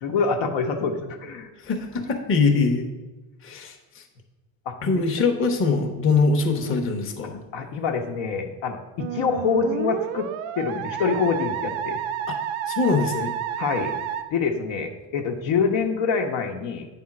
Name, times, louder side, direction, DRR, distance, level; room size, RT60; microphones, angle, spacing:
voice 1, 0.0-1.5 4.7-4.8 7.5-10.3 10.6-12.0 13.6-14.0 14.3-16.9, left 5 dB, 70° left, 4 dB, 1.1 m, -25 dB
voice 2, 1.6-2.9 3.4-4.0 4.8-7.4 12.7-13.3, left 4 dB, 25° left, 3 dB, 0.9 m, -23 dB
Musical instrument, 9.0-14.2, right 9 dB, 85° right, 0.7 m, -30 dB
8.5 x 3.6 x 5.9 m, 1.2 s
cardioid pair, 130°, 48 cm